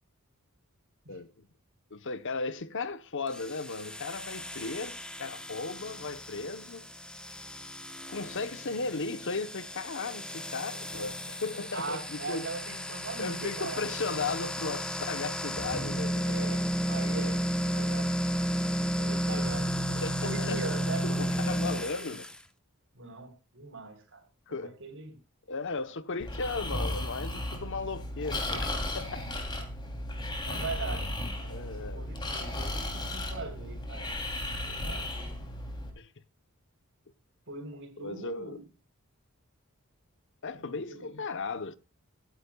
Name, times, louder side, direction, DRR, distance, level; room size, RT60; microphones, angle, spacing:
voice 1, 1.1-1.5 1.9-6.9 8.1-12.5 13.2-16.5 19.9-20.6 21.0-22.3 24.5-24.8 25.5-29.3 31.4-32.2 36.0-36.1 38.0-38.6 40.4-41.7, left 3 dB, 60° left, 0.9 m, -36 dB
sound 1, 3.3-22.4, equal, 5° left, 0.9 m, -33 dB
voice 2, 11.7-13.9 16.2-18.2 19.0-19.7 20.2-22.2 22.9-25.2 30.5-31.1 31.5-34.1 34.7-35.4 37.5-38.7 40.5-41.2, right 3 dB, 60° right, 3.8 m, -41 dB
Breathing, 26.2-35.9, left 1 dB, 20° left, 3.0 m, -35 dB
22.5 x 10.0 x 2.3 m
head